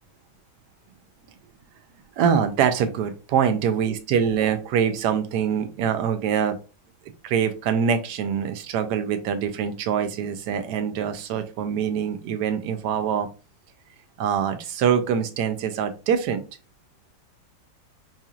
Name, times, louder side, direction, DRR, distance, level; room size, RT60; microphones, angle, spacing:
voice 1, 2.2-6.6 7.2-13.3 14.2-16.5, right 7 dB, 75° right, 9 dB, 1.0 m, -24 dB
5.5 x 2.8 x 2.4 m, 0.33 s
omnidirectional pair, 2.2 m